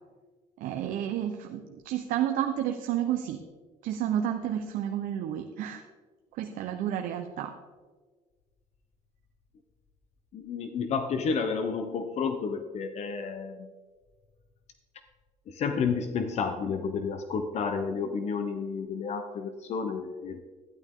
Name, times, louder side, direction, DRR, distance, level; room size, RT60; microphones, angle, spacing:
voice 1, 0.6-3.4 3.8-5.8 6.3-7.5, right 10 dB, 80° right, 5 dB, 0.8 m, -31 dB
voice 2, 10.3-13.7 15.5-20.4, left 5 dB, 50° left, 8 dB, 0.9 m, -31 dB
12.5 x 11.0 x 3.7 m, 1.4 s
cardioid pair, 135°, 14 cm